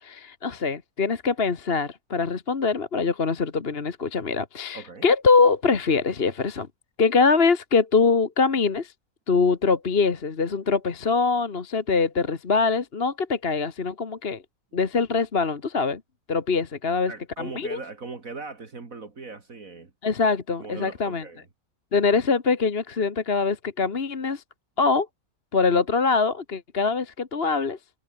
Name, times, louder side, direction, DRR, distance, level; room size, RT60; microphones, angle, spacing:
voice 1, 0.0-6.7 7.0-8.9 9.3-14.4 14.7-16.0 16.3-17.1 17.4-17.8 20.0-21.2 21.9-24.4 24.8-25.1 25.5-27.8, left 4 dB, 40° left, 1.6 m, -23 dB
voice 2, 4.7-5.1 17.1-19.9 20.6-21.5, right 4 dB, 65° right, 3.0 m, -39 dB
omnidirectional pair, 1.6 m